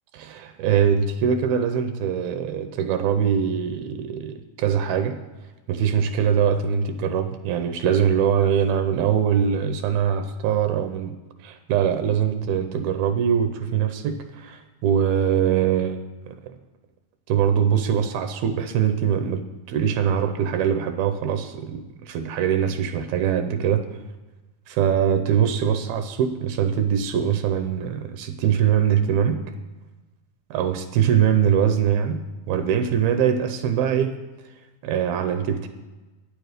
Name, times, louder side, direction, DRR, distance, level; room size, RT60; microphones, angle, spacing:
voice 1, 0.1-5.2 5.7-11.1 11.4-16.0 16.2-16.5 17.3-23.8 24.7-29.4 30.5-32.2 32.5-34.1 34.8-35.7, right 8 dB, 80° right, 8 dB, 2.4 m, -22 dB
9.6 x 7.0 x 6.5 m, 1.2 s
omnidirectional pair, 4.4 m